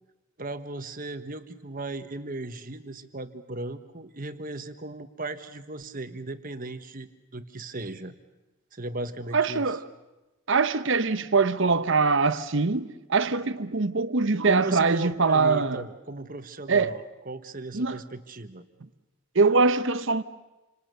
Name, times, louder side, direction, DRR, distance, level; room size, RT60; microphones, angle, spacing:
voice 1, 0.4-8.1 8.7-9.6 14.4-18.6, right 2 dB, 40° right, 1.3 m, -36 dB
voice 2, 9.3-9.8 10.5-15.9 16.7-17.0 17.7-18.0 19.3-20.2, right 4 dB, 55° right, 0.9 m, -23 dB
29.0 x 26.0 x 6.8 m
head